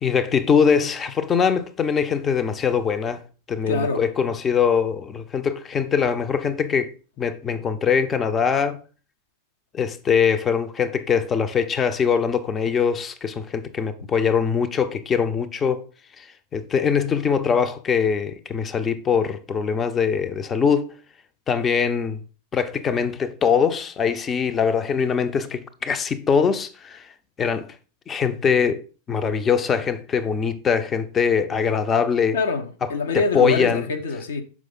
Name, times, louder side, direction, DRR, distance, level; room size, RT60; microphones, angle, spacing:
voice 1, 0.0-3.2 3.5-8.8 9.7-15.8 16.2-16.3 16.5-20.9 21.5-22.2 22.5-27.0 27.4-27.7 28.1-28.8 29.1-32.4 33.1-33.9, left 6 dB, 20° left, 0.5 m, -22 dB
voice 2, 3.7-4.1 32.3-34.4, left 3 dB, 65° left, 0.7 m, -25 dB
6.1 x 4.9 x 3.9 m
figure-of-eight pair, 90°, 0 cm